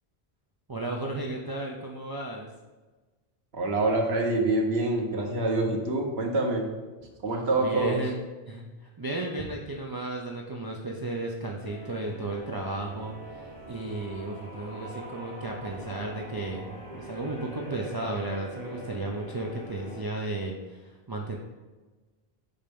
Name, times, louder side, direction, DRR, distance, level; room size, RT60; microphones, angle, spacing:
voice 1, 0.7-2.5 7.5-21.4, right 2 dB, 30° right, -1 dB, 0.5 m, -34 dB
voice 2, 3.5-6.7 7.2-8.0, right 2 dB, 90° right, 0 dB, 1.3 m, -26 dB
sound 1, 11.6-20.0, equal, 35° left, 2.1 m, -43 dB
5.3 x 4.3 x 5.2 m, 1.3 s
omnidirectional pair, 1.0 m